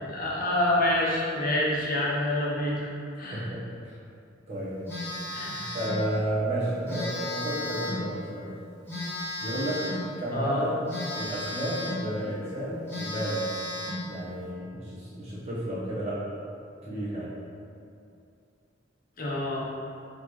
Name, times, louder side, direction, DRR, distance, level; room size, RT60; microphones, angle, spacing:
voice 1, 0.0-2.9 3.2-3.4 5.3-5.5 10.3-10.6 19.2-19.6, left 1 dB, 50° left, -5 dB, 0.7 m, -27 dB
voice 2, 3.3-4.0 4.5-4.8 5.5-8.5 9.4-9.9 10.2-10.8 11.2-13.5 14.0-16.3 16.8-17.3, right 1 dB, 35° right, -9 dB, 1.1 m, -32 dB
Telephone, 4.9-6.0 6.9-8.1 8.9-10.1 10.9-12.1 12.5-12.6 12.9-14.1, left 1 dB, 10° left, 1.0 m, -34 dB
4.0 x 3.5 x 3.1 m, 2.5 s
head